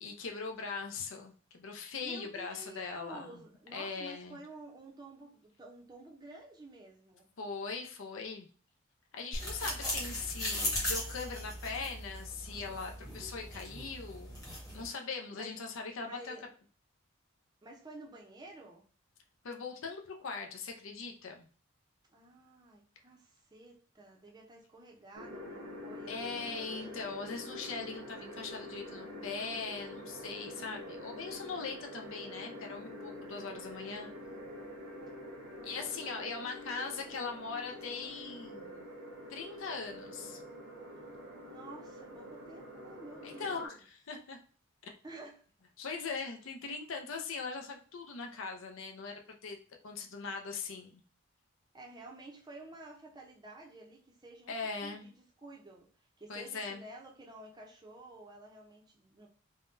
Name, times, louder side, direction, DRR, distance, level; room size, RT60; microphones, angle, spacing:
voice 1, 0.0-3.4 3.7-4.4 7.4-8.5 9.1-14.5 14.7-16.3 19.4-21.5 26.1-34.1 35.6-38.9 39.3-40.4 43.2-44.4 44.8-44.9 45.8-49.6 49.8-51.0 54.5-55.1 56.3-56.8, left 4 dB, 65° left, 3 dB, 0.5 m, -40 dB
voice 2, 2.0-7.3 9.6-10.0 15.4-15.5 16.0-16.5 17.6-18.8 22.1-27.1 35.5-36.9 41.5-43.8 45.0-45.5 51.7-59.3, right 2 dB, 20° right, -1 dB, 0.6 m, -51 dB
sound 1, 9.3-14.9, left 1 dB, 15° left, 1.0 m, -38 dB
sound 2, 25.1-43.7, left 1 dB, 80° right, 0.9 m, -46 dB
3.5 x 2.2 x 2.6 m, 0.41 s
head